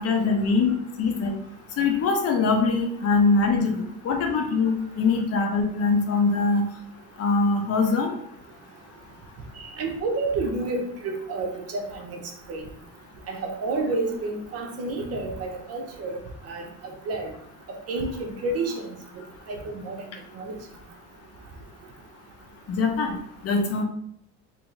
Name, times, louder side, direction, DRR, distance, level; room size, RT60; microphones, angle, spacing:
voice 1, 0.0-1.4 1.8-6.6 7.2-8.1 22.7-23.2 23.4-23.8, left 4 dB, 50° left, 3 dB, 0.7 m, -23 dB
voice 2, 9.6-12.2 12.5-12.6 13.3-16.2 16.5-16.6 17.1-17.3 17.9-18.9 19.5-20.1 20.3-20.6, right 3 dB, 50° right, 2 dB, 0.8 m, -29 dB
3.0 x 2.9 x 3.7 m, 0.67 s
cardioid pair, 120°, 33 cm